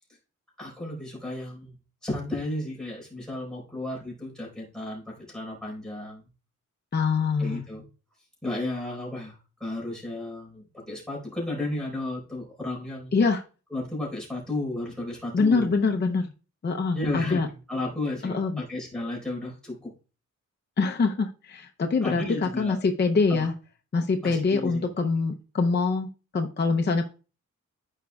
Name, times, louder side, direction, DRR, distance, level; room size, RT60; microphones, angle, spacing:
voice 1, 0.6-1.8 2.0-6.3 7.4-7.8 8.4-13.1 13.7-15.7 16.9-19.9 22.0-22.8 23.3-23.5 24.2-24.9, left 2 dB, ahead, -4 dB, 4.4 m, -33 dB
voice 2, 6.9-7.6 13.1-13.4 15.3-16.3 16.6-17.5 18.2-18.6 20.8-23.5 23.9-27.1, left 4 dB, 35° left, 4 dB, 0.6 m, -24 dB
14.5 x 5.2 x 2.3 m, 0.34 s
wide cardioid pair, 180°, 30 cm